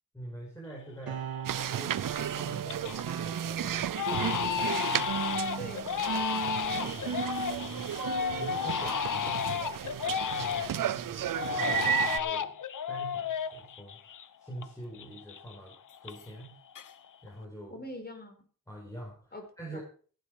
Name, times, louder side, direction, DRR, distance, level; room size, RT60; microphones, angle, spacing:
voice 1, 0.1-1.3 1.6-3.0 3.4-5.1 6.7-7.9 8.4-9.5 10.3-12.6 12.9-14.0 14.4-16.5 17.2-17.8 18.7-19.8, right 1 dB, 10° left, -2 dB, 4.9 m, -45 dB
Crying sobbing, 0.8-0.9 1.3-1.8 2.2-3.0 3.3-3.5 3.9-10.9 11.3-14.7 14.9-16.5 16.7-17.3, left 8 dB, 60° left, 0.9 m, -33 dB
sound 1, 1.1-8.9, right 7 dB, 80° right, 2.2 m, -38 dB
sound 2, 1.5-12.2, right 10 dB, 65° right, 0.7 m, -34 dB
voice 2, 5.5-6.6 17.7-18.3 19.3-19.4 19.7-19.8, left 1 dB, 30° left, 3 dB, 4.9 m, -44 dB
15.0 x 9.5 x 4.9 m, 0.42 s
cardioid pair, 90°, 35 cm